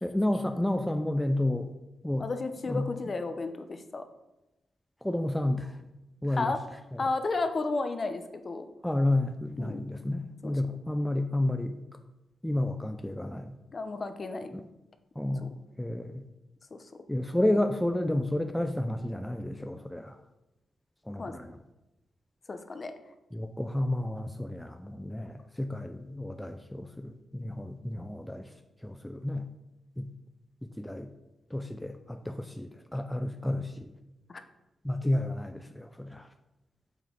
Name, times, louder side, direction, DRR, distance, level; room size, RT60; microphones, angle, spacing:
voice 1, 0.0-1.7 2.0-2.3 2.7-2.8 5.0-5.7 6.2-6.5 8.8-11.7 12.4-13.5 15.2-16.1 17.1-20.2 21.1-21.5 23.3-28.5 28.8-29.4 30.0-30.1 30.8-31.1 31.5-33.9 34.8-36.3, left 1 dB, 5° left, 6 dB, 0.5 m, -31 dB
voice 2, 2.2-4.0 6.4-6.6 7.0-8.7 9.6-9.9 10.4-10.6 13.7-14.5 15.4-15.5 16.7-16.9 21.2-21.3 22.5-22.9 34.3-34.4, left 3 dB, 40° left, 8 dB, 0.8 m, -33 dB
6.8 x 6.1 x 5.4 m, 0.97 s
cardioid pair, 105°, 0 cm